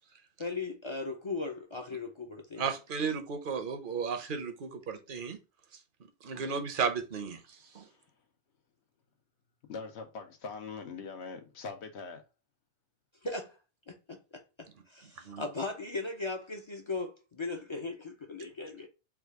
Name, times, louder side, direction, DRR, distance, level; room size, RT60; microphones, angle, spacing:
voice 1, 0.4-2.7 13.2-13.6 13.9-14.2 14.6-18.9, left 3 dB, 35° left, 0.5 m, -38 dB
voice 2, 2.6-5.4 6.2-7.9 15.2-15.4, right 5 dB, 55° right, 0.8 m, -34 dB
voice 3, 7.6-8.0 9.7-12.2, left 4 dB, 85° left, 1.1 m, -42 dB
3.5 x 2.4 x 4.5 m
omnidirectional pair, 1.1 m